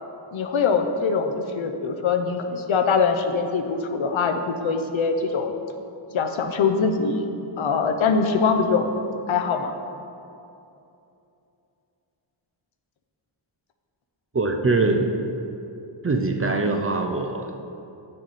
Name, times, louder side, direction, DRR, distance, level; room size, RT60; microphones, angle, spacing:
voice 1, 0.3-5.5 6.1-7.2 7.6-8.9 9.3-9.7, left 5 dB, 75° left, 5 dB, 0.8 m, -23 dB
voice 2, 14.3-15.1 16.0-17.6, right 3 dB, 30° right, 4 dB, 0.5 m, -23 dB
7.9 x 6.6 x 4.1 m, 2.7 s
wide cardioid pair, 140°, 47 cm